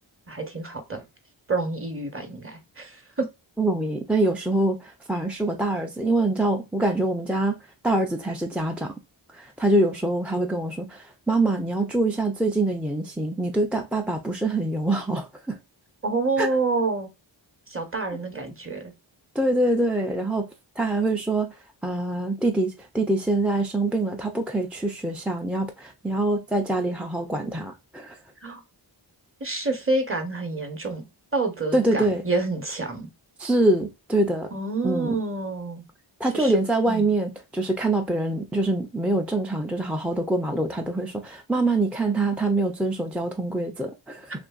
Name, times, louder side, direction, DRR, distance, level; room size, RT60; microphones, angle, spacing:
voice 1, 0.3-1.0 1.5-3.3 16.0-17.1 17.7-18.9 28.4-28.6 29.4-31.0 31.3-33.1 34.5-35.8 36.3-36.6 36.8-37.1, right 3 dB, 25° right, 0.8 m, -28 dB
voice 2, 3.6-8.9 9.3-15.6 16.4-16.5 19.3-20.5 20.8-28.2 31.7-32.2 33.4-34.5 34.8-35.2 36.2-44.3, right 2 dB, 5° right, 0.3 m, -25 dB
2.7 x 2.5 x 2.3 m
wide cardioid pair, 45°, 48 cm